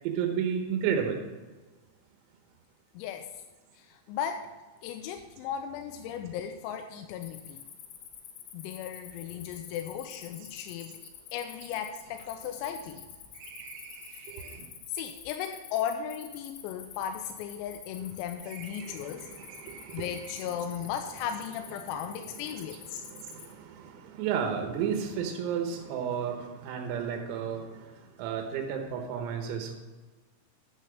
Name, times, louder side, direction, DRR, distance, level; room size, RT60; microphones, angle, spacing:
voice 1, 0.1-1.2 14.3-14.5 18.8-27.7 28.2-29.8, right 7 dB, 90° right, 4 dB, 3.7 m, -33 dB
voice 2, 3.0-3.3 3.8-4.5 4.8-7.6 8.5-10.9 11.3-13.0 14.2-14.3 14.9-19.3 19.9-23.0, left 9 dB, 90° left, 6 dB, 3.3 m, -36 dB
Cricket, 7.2-23.5, left 9 dB, 70° left, 2.9 m, -48 dB
sound 1, 10.7-10.8 11.0-11.1 11.5-14.8 15.7-18.1 18.4-20.7, right 6 dB, 65° right, 2.6 m, -51 dB
10.0 x 6.8 x 6.2 m, 1.3 s
omnidirectional pair, 6.0 m